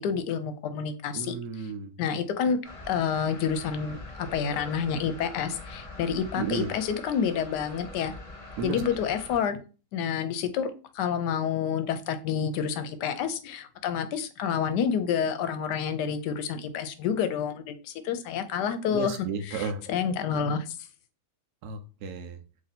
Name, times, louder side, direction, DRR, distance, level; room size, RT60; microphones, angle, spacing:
voice 1, 0.0-1.3 2.0-2.6 2.9-8.1 8.6-9.6 9.9-19.2 19.4-20.8, left 7 dB, 80° left, 1.1 m, -29 dB
voice 2, 1.1-1.9 6.4-6.7 8.6-8.8 18.9-19.8 21.6-22.4, right 5 dB, 75° right, 1.1 m, -33 dB
sound 1, 2.6-9.4, left 2 dB, 50° left, 0.4 m, -44 dB
3.1 x 2.7 x 4.1 m
omnidirectional pair, 1.9 m